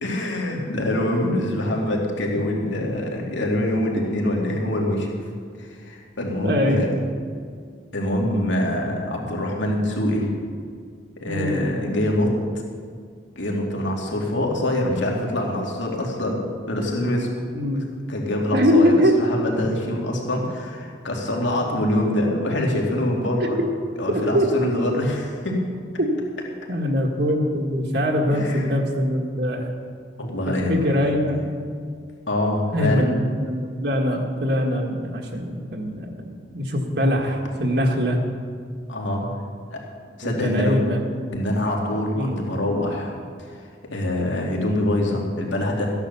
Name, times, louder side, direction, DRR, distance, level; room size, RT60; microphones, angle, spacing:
voice 1, 0.0-5.1 5.6-6.9 7.9-10.3 11.2-12.3 13.4-17.3 17.7-23.6 24.0-25.6 28.3-28.7 30.2-30.9 32.3-33.1 38.9-39.4 39.7-39.8 40.2-40.8 41.3-43.5 43.9-45.9, left 1 dB, 75° left, -1 dB, 2.7 m, -25 dB
voice 2, 6.4-6.8 11.3-11.7 17.5-17.8 18.5-19.2 23.6-23.7 24.1-24.5 26.0-26.3 26.7-29.7 30.7-31.5 32.7-38.2 40.2-41.1 42.1-42.4, equal, 55° right, 1 dB, 1.7 m, -22 dB
14.0 x 10.0 x 6.9 m, 2.1 s
head